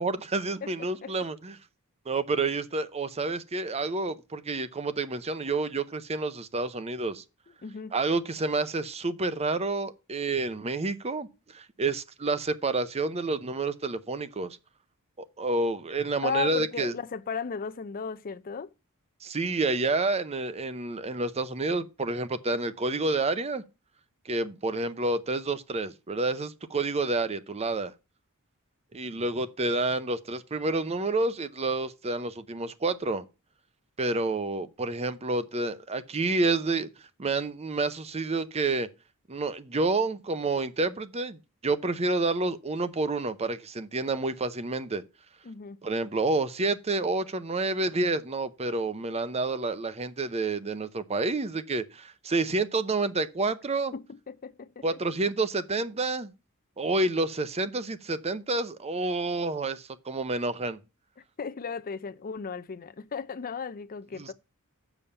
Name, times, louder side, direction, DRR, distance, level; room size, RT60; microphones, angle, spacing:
voice 1, 0.0-1.5 2.1-7.2 7.9-14.6 15.2-16.9 19.2-23.6 24.3-27.9 28.9-33.2 34.0-36.9 37.2-38.9 39.3-45.0 45.8-53.9 54.8-56.3 56.8-60.8 64.2-64.3, right 3 dB, 30° right, 0.7 m, -29 dB
voice 2, 0.6-1.1 7.6-7.9 16.2-18.7 45.4-45.8 53.9-54.8 61.4-64.3, left 6 dB, 40° left, 0.5 m, -35 dB
7.0 x 6.9 x 5.6 m
head